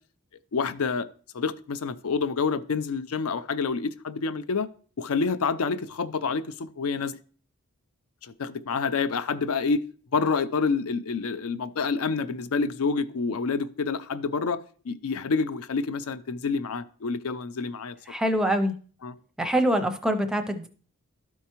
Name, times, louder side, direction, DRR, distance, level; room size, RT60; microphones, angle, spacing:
voice 1, 0.5-1.1 1.3-4.7 5.0-7.2 8.2-9.8 10.1-14.6 14.9-17.9 19.0-19.1, left 4 dB, 80° left, 0.5 m, -28 dB
voice 2, 18.1-18.8 19.4-20.7, equal, 5° right, 0.5 m, -24 dB
12.5 x 4.5 x 2.9 m
head